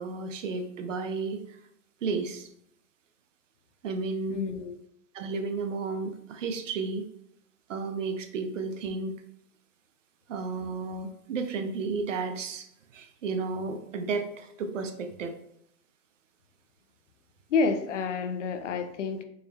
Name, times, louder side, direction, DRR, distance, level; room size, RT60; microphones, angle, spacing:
voice 1, 0.0-1.6 2.0-2.5 3.8-4.4 5.1-7.1 7.7-9.1 10.3-15.4, right 4 dB, 55° right, 8 dB, 0.5 m, -33 dB
voice 2, 4.3-4.8 17.5-19.2, left 4 dB, 55° left, 8 dB, 0.5 m, -29 dB
4.5 x 2.2 x 3.2 m, 0.74 s
hypercardioid pair, 165°, 46 cm